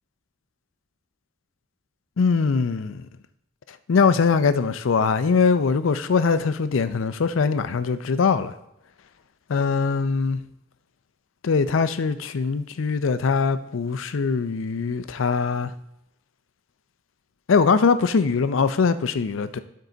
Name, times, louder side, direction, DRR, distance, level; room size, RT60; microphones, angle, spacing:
voice 1, 2.2-3.0 3.9-8.5 9.5-10.4 11.4-15.7 17.5-19.6, left 5 dB, 85° left, 0.5 m, -22 dB
11.5 x 4.7 x 3.9 m
head